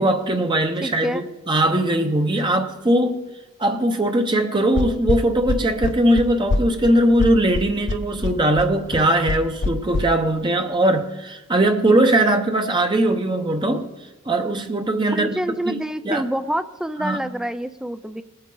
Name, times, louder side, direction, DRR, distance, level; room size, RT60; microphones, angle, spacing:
voice 1, 0.0-3.2 3.6-13.9 14.3-15.3 15.6-15.8 16.0-16.2 17.0-17.2, right 1 dB, 20° right, 0.7 m, -20 dB
voice 2, 0.8-1.2 15.1-18.2, right 1 dB, 5° right, 0.3 m, -27 dB
sound 1, 4.8-10.0, left 3 dB, 55° left, 0.5 m, -24 dB
20.5 x 8.7 x 3.8 m
head